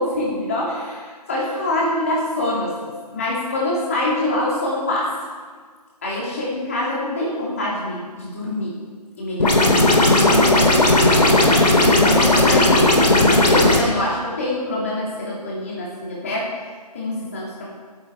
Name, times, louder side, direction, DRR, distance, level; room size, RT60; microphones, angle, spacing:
voice 1, 0.0-5.1 6.0-8.8 9.2-10.1 11.8-12.8 13.1-17.7, left 1 dB, 20° left, -5 dB, 3.1 m, -25 dB
sound 1, 9.4-13.8, left 1 dB, 75° left, 3.5 m, -15 dB
16.5 x 11.0 x 4.9 m, 1.6 s
hypercardioid pair, 180°, 21 cm